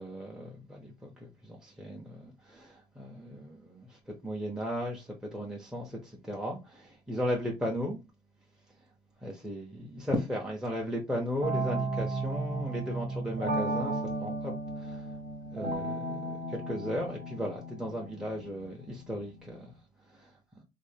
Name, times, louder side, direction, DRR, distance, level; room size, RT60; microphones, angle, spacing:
voice 1, 0.0-8.0 9.2-15.1 15.5-19.7 20.1-20.3, equal, 5° right, 0.6 m, -36 dB
sound 1, 11.4-19.6, right 2 dB, 45° right, 0.8 m, -35 dB
2.5 x 2.0 x 3.3 m
cardioid pair, 110°, 17 cm